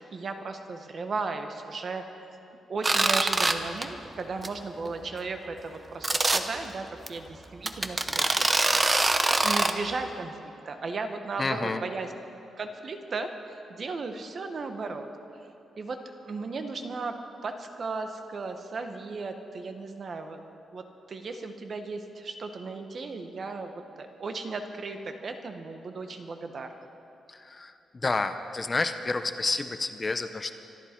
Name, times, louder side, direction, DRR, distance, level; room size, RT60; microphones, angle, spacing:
voice 1, 0.1-2.0 2.7-9.1 9.4-10.4 10.6-12.1 12.6-15.1 15.8-16.0 16.3-17.2 17.4-26.7, right 3 dB, 40° right, 6 dB, 1.2 m, -36 dB
sound 1, 2.8-3.5 3.8-4.1 4.4-4.5 4.8-4.9 6.0-6.4 7.1-7.2 7.7-9.7, right 2 dB, 20° right, 0.7 m, -23 dB
voice 2, 11.4-11.8 27.3-30.6, left 3 dB, 25° left, 8 dB, 0.6 m, -30 dB
25.5 x 12.5 x 4.5 m, 2.9 s
wide cardioid pair, 145°, 0 cm